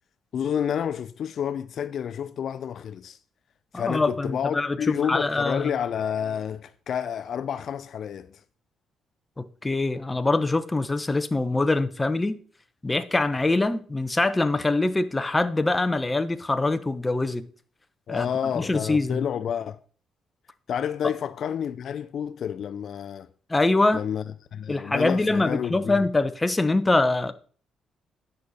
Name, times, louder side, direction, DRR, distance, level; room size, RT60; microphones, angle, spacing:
voice 1, 0.3-3.2 3.7-8.4 18.1-19.8 20.7-23.3 23.9-24.2 24.5-26.0, left 8 dB, 60° left, 0.4 m, -29 dB
voice 2, 3.7-5.7 9.4-12.4 12.8-17.4 18.1-18.3 18.6-19.2 23.5-24.0 24.7-27.3, left 2 dB, 15° left, 0.8 m, -24 dB
10.0 x 6.5 x 4.2 m
cardioid pair, 90°, 0 cm